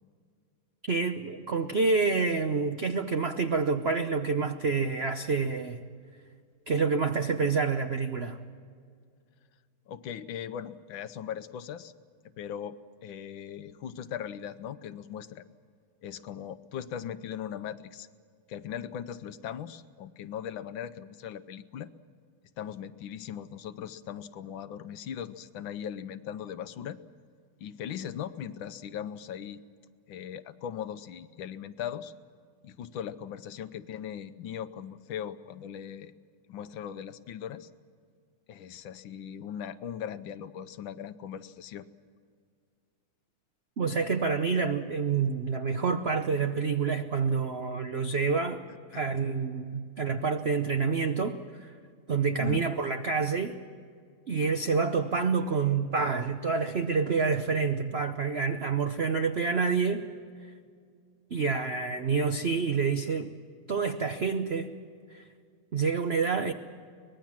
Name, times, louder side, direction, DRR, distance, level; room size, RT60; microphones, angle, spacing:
voice 1, 0.8-5.8 6.7-8.4 43.8-48.6 48.9-51.7 52.1-53.6 54.3-60.1 61.3-63.3 63.7-64.7 65.1-65.2 65.7-66.5, right 5 dB, 70° right, 7 dB, 0.6 m, -28 dB
voice 2, 9.9-11.9 12.4-15.5 16.0-18.1 18.5-21.9 22.6-27.0 27.6-29.6 30.1-32.1 32.6-36.1 36.5-37.7 38.5-41.9 48.9-49.0 52.4-52.6, left 9 dB, 70° left, 12 dB, 1.5 m, -39 dB
24.0 x 20.0 x 7.4 m, 2.1 s
omnidirectional pair, 2.3 m